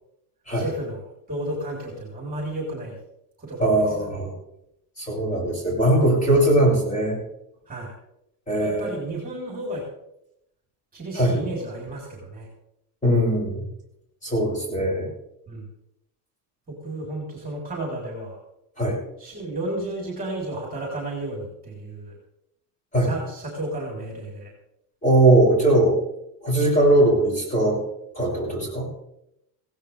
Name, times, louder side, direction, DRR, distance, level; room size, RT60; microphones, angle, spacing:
voice 1, 0.5-1.0 1.3-3.0 3.4-4.1 7.7-7.9 8.5-9.8 10.9-12.5 15.5-15.6 16.7-18.4 19.2-22.1 23.0-24.5, right 1 dB, 20° right, -2 dB, 4.5 m, -32 dB
voice 2, 3.6-4.3 5.0-7.2 8.5-8.9 11.1-11.4 13.0-13.7 14.2-15.1 18.8-19.0 22.9-23.1 25.0-26.0 26.4-27.8 28.2-28.9, right 1 dB, 15° left, -3 dB, 7.7 m, -20 dB
17.5 x 16.5 x 3.6 m, 0.81 s
cardioid pair, 130°, 46 cm